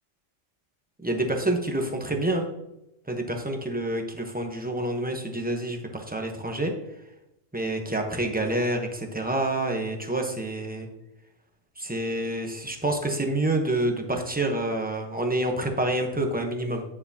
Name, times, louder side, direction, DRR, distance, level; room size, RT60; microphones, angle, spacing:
voice 1, 1.0-2.5 3.1-6.7 7.5-10.9 11.8-16.8, right 1 dB, 10° right, 2 dB, 0.9 m, -28 dB
9.5 x 6.6 x 2.8 m, 0.88 s
omnidirectional pair, 1.3 m